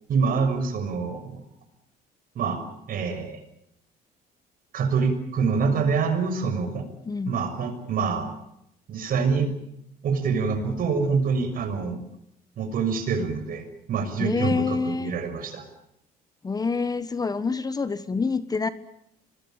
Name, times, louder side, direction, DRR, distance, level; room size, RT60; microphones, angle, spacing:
voice 1, 0.1-1.4 2.3-2.6 2.9-3.4 4.7-6.8 7.2-8.3 8.9-9.5 10.0-12.0 12.6-15.6, right 5 dB, 60° right, 7 dB, 6.4 m, -26 dB
voice 2, 7.1-7.4 14.2-15.1 16.4-18.7, left 4 dB, 20° left, 13 dB, 1.2 m, -26 dB
25.5 x 20.5 x 8.9 m, 0.77 s
cardioid pair, 110°, 17 cm